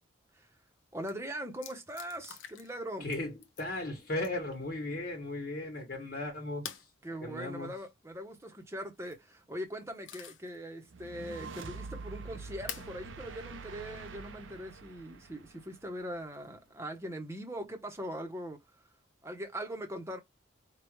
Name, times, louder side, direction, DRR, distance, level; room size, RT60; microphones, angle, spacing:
sound 1, 0.7-0.8 1.0-1.1 1.6-2.8 3.1-3.7 4.2-4.5 6.6-6.9 8.8-9.2 9.7-10.6 11.0-11.1 12.7-12.9 14.1-14.2 16.2-16.7, left 9 dB, 80° left, 0.8 m, -46 dB
voice 1, 0.9-3.1 7.0-18.6 19.2-20.2, equal, 15° right, 1.0 m, -41 dB
voice 2, 3.0-6.8 7.2-7.7, left 2 dB, 50° left, 1.3 m, -36 dB
sound 2, 10.9-16.2, right 4 dB, 80° right, 0.8 m, -46 dB
4.9 x 2.3 x 3.1 m
head